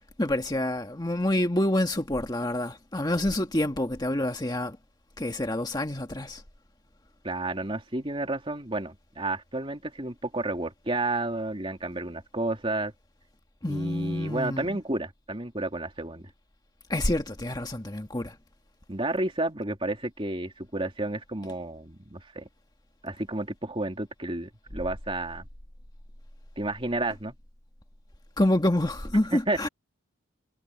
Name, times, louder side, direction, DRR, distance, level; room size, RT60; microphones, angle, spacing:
voice 1, 0.2-4.8 5.2-6.4 13.6-14.8 16.9-18.4 28.4-29.7, left 1 dB, 20° left, 1.7 m, -27 dB
voice 2, 7.2-12.9 13.6-16.3 18.9-22.5 23.0-25.4 26.6-27.3 29.3-29.7, right 2 dB, 25° right, 3.1 m, -31 dB
head